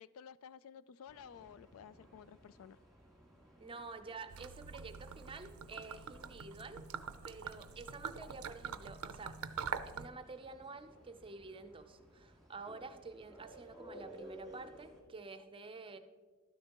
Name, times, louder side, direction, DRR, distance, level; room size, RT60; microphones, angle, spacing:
voice 1, 0.0-2.8, left 7 dB, 75° left, 17 dB, 0.3 m, -54 dB
sound 1, 1.1-15.0, right 1 dB, ahead, 1.9 m, -58 dB
voice 2, 3.6-6.8 7.2-9.4 9.8-16.0, right 3 dB, 25° right, 9 dB, 0.6 m, -49 dB
Gurgling / Liquid, 4.3-10.1, right 6 dB, 90° right, 0.5 m, -44 dB
12.0 x 10.0 x 3.0 m, 1.4 s
head